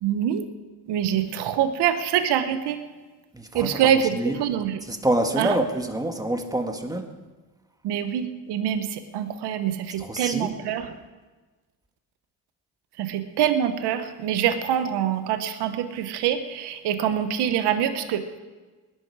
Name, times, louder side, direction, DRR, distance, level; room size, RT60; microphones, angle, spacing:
voice 1, 0.0-0.4 0.9-2.8 3.5-4.8 5.4-5.5 7.8-10.9 13.0-18.3, right 9 dB, 80° right, 10 dB, 1.2 m, -25 dB
voice 2, 3.3-4.4 4.8-7.1 10.0-10.6, right 1 dB, 10° right, 5 dB, 1.9 m, -27 dB
19.0 x 11.5 x 4.9 m, 1.3 s
supercardioid pair, 75°, 40 cm